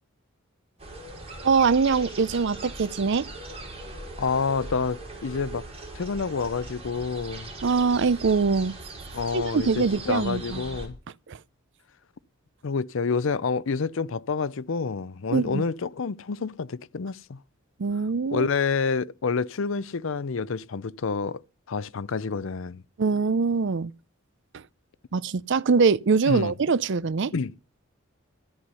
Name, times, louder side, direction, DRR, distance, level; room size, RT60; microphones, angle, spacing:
sound 1, 0.8-10.9, right 2 dB, 30° right, 5.3 m, -40 dB
voice 1, 1.4-3.3 7.6-8.8 9.3-10.6 11.3-11.4 15.3-15.6 17.8-18.5 23.0-23.9 24.5-24.6 25.1-27.3, right 5 dB, 60° right, 0.6 m, -23 dB
voice 2, 4.2-5.7 5.9-7.5 9.1-11.0 12.6-17.4 18.3-21.4 21.7-22.8 26.3-26.5 27.3-27.5, left 5 dB, 70° left, 0.6 m, -28 dB
13.5 x 9.6 x 5.5 m
head